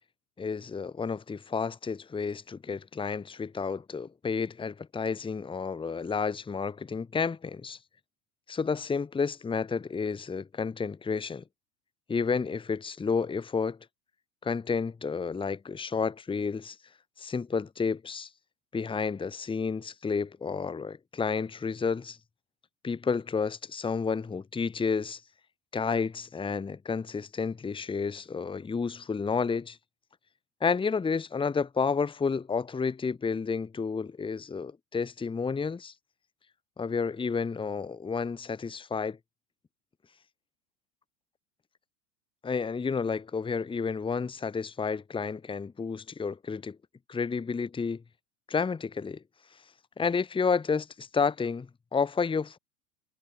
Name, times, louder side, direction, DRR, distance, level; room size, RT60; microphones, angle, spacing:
voice 1, 0.4-7.8 8.5-11.4 12.1-13.8 14.4-16.8 17.2-18.3 18.7-22.2 22.8-25.2 25.7-29.8 30.6-35.9 36.8-39.2 42.4-46.8 47.1-48.0 48.5-49.2 50.0-52.6, left 5 dB, 10° left, 1.4 m, -31 dB
figure-of-eight pair, 85°, 45 cm